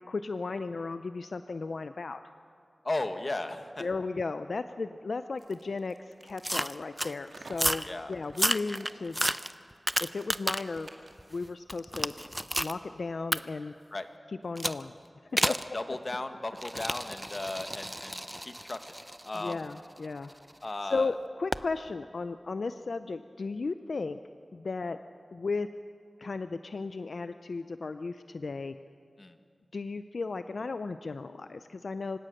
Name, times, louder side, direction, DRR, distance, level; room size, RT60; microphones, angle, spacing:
voice 1, 0.0-2.2 3.8-9.2 10.0-10.9 11.3-12.1 12.6-13.7 14.4-14.9 15.3-15.4 19.3-20.3 20.8-24.2 24.5-25.0 25.3-25.7 26.2-28.7 29.7-32.2, left 3 dB, 75° left, 10 dB, 0.5 m, -35 dB
voice 2, 2.8-3.9 7.9-8.1 13.9-14.1 15.4-18.8 19.2-19.7 20.6-21.1 29.2-29.4, left 2 dB, 45° left, 8 dB, 1.4 m, -36 dB
sound 1, 5.4-11.3, right 2 dB, 70° right, 2.0 m, -52 dB
sound 2, 6.4-7.1 7.5-7.9 8.3-10.8 11.2-12.8 13.3-13.4 14.6-14.8 15.4-15.7 16.6-20.5 21.5-21.7, equal, 5° right, 0.6 m, -32 dB
26.0 x 16.5 x 6.5 m, 2.2 s
wide cardioid pair, 55°, 0 cm